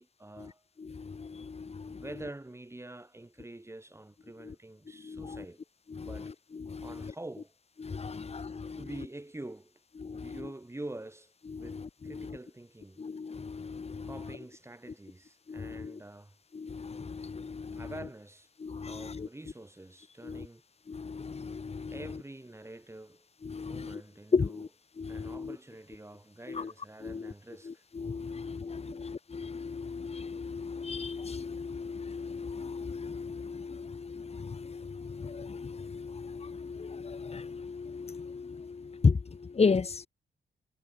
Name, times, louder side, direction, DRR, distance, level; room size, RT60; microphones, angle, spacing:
voice 1, 0.0-0.6 1.9-5.7 6.0-6.4 6.8-7.5 8.5-9.8 10.1-13.0 14.0-16.4 17.7-18.5 18.9-20.6 21.9-23.3 23.6-24.6 25.1-27.8 28.3-28.4 28.9-29.0, right 2 dB, 15° right, 6.7 m, -46 dB
voice 2, 0.8-2.1 4.4-4.5 5.0-5.4 5.9-7.1 7.8-8.8 10.0-10.5 11.5-12.4 13.0-14.4 15.5-16.0 16.5-17.9 18.6-19.3 20.2-20.5 20.9-22.2 23.4-24.0 24.3-24.7 25.0-25.6 26.5-26.7 27.0-27.3 27.6-40.1, left 5 dB, 35° left, 1.2 m, -35 dB
wide cardioid pair, 140°, 19 cm